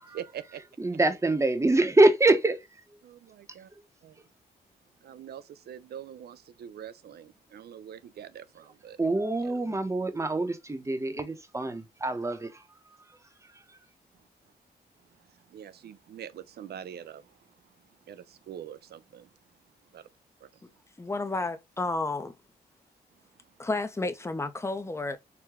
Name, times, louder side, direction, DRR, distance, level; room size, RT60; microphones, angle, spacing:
voice 1, 0.1-0.6 3.0-3.7 4.0-4.2 5.0-9.0 14.2-14.3 15.1-17.7 18.1-19.3 19.9-20.0 20.4-20.6, right 9 dB, 70° right, 0.5 m, -44 dB
voice 2, 0.8-2.7 9.0-12.6 13.5-13.6, right 2 dB, 15° right, 0.8 m, -25 dB
voice 3, 21.0-22.3 23.6-25.2, left 2 dB, 15° left, 0.6 m, -31 dB
4.8 x 2.2 x 3.5 m
cardioid pair, 70°, 17 cm